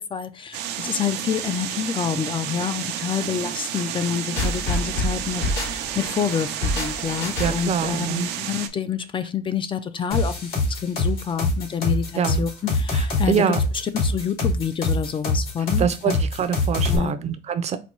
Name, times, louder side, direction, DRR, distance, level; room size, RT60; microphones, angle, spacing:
voice 1, 0.0-5.4 5.7-13.4 13.9-15.9 16.9-17.1, left 8 dB, 30° left, 0.5 m, -27 dB
sound 1, 0.5-8.7, right 10 dB, 85° right, 0.6 m, -31 dB
sound 2, 4.4-7.8, left 1 dB, 80° left, 2.3 m, -27 dB
voice 2, 7.4-8.3 12.1-12.5 12.9-13.6 15.8-17.8, right 8 dB, 40° right, 0.6 m, -25 dB
sound 3, 10.1-17.0, left 2 dB, 65° left, 2.6 m, -23 dB
4.2 x 2.3 x 4.3 m
cardioid pair, 110°, 17 cm